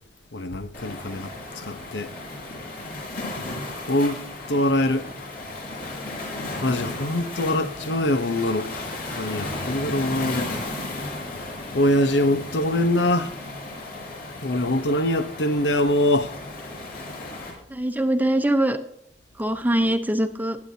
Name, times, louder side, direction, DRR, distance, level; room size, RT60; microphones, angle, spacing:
voice 1, 0.3-2.1 3.9-4.2 4.5-5.1 6.6-10.6 11.7-13.4 14.4-16.4, left 1 dB, 85° left, 1.0 m, -24 dB
Waves surf, 0.7-17.5, left 2 dB, 55° left, 5.0 m, -35 dB
voice 2, 17.7-18.8 19.4-20.6, right 1 dB, 10° right, 0.8 m, -22 dB
21.5 x 8.5 x 2.8 m
head